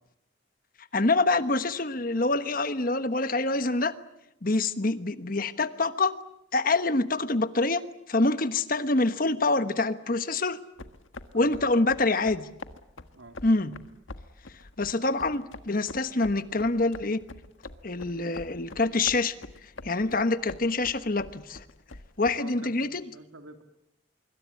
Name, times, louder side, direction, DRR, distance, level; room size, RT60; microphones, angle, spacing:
voice 1, 0.9-3.9 4.4-6.1 6.5-7.8 8.1-10.6 11.3-12.5 13.4-13.7 14.8-17.2 17.8-19.3 19.8-21.6 22.2-23.0, left 2 dB, 45° left, 11 dB, 1.2 m, -26 dB
sound 1, 10.8-22.3, left 2 dB, 75° left, 1.5 m, -45 dB
voice 2, 11.3-11.7 13.1-13.3 22.3-23.6, right 2 dB, 90° right, 6 dB, 3.1 m, -48 dB
26.0 x 23.5 x 8.5 m, 0.80 s
head